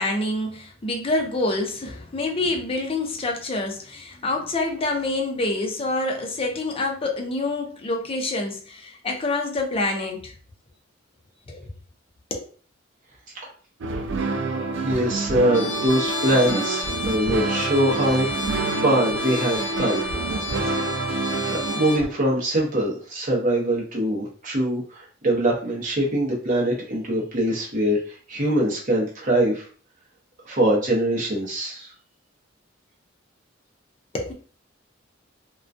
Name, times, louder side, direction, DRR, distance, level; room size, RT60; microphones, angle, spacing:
voice 1, 0.0-10.3 11.5-11.7 12.3-12.5 34.1-34.3, left 2 dB, 30° left, 0.5 m, -27 dB
sound 1, 13.8-22.1, right 3 dB, 65° right, 0.3 m, -28 dB
voice 2, 14.8-20.0 20.7-20.9 21.4-28.0 28.3-29.7 30.4-31.9, right 1 dB, 45° right, 0.7 m, -23 dB
Trumpet, 15.5-22.1, left 3 dB, 85° left, 0.7 m, -32 dB
2.3 x 2.2 x 2.5 m
head